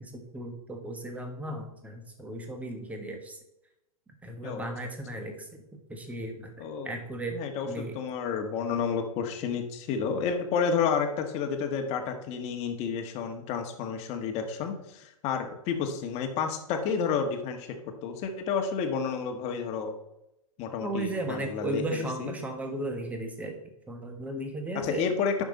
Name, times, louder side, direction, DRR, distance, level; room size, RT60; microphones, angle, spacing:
voice 1, 0.0-3.4 4.2-5.5 5.9-7.4 7.7-8.0 20.8-23.6 23.9-25.1, right 1 dB, 10° right, 3 dB, 1.6 m, -35 dB
voice 2, 6.6-6.9 7.3-17.7 18.0-20.0 20.6-22.3 24.7-25.4, left 6 dB, 35° left, 5 dB, 1.6 m, -30 dB
10.5 x 6.3 x 4.1 m, 0.87 s
hypercardioid pair, 125°, 19 cm